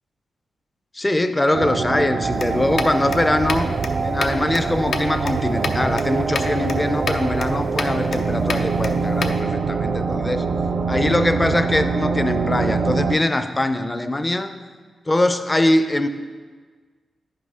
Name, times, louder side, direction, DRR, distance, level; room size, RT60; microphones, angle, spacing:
voice 1, 0.9-3.7 4.0-10.5 10.9-14.5 15.1-16.1, left 1 dB, 15° left, 9 dB, 0.5 m, -22 dB
sound 1, 1.5-13.2, right 4 dB, 50° right, 0.4 m, -24 dB
sound 2, 2.3-9.4, left 4 dB, 65° left, 0.6 m, -31 dB
10.0 x 5.6 x 5.0 m, 1.5 s
wide cardioid pair, 115°, 0 cm